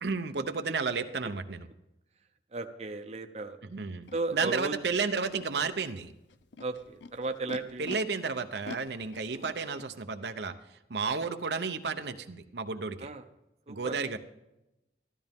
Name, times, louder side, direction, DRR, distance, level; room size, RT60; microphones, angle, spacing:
voice 1, 0.0-1.7 3.6-6.1 7.8-13.1 13.7-14.2, right 4 dB, 70° right, 8 dB, 0.8 m, -32 dB
voice 2, 2.5-3.6 4.1-4.7 6.6-7.8 9.3-9.5 13.0-13.2 13.7-13.9, right 3 dB, 35° right, 6 dB, 0.8 m, -35 dB
Animal, 4.1-4.2 4.9-5.5 6.3-8.0 8.6-9.9, left 3 dB, 85° left, 0.7 m, -44 dB
14.0 x 13.0 x 3.6 m, 0.91 s
head